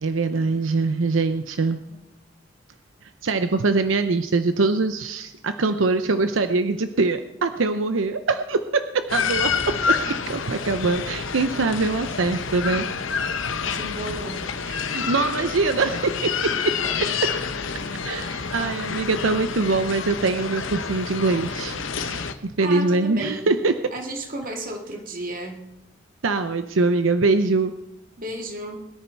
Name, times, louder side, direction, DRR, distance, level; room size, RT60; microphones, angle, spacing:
voice 1, 0.0-1.8 3.2-10.0 10.3-12.9 14.9-16.7 17.0-17.3 18.0-23.7 26.2-27.7, right 3 dB, 85° right, 10 dB, 0.7 m, -23 dB
sound 1, 9.1-22.3, left 6 dB, 90° left, 1.0 m, -28 dB
voice 2, 13.6-15.5 16.8-17.0 18.1-18.5 22.6-23.5 23.9-25.7 28.2-28.9, right 1 dB, 45° right, 3 dB, 2.2 m, -34 dB
21.5 x 10.5 x 4.5 m, 0.90 s
head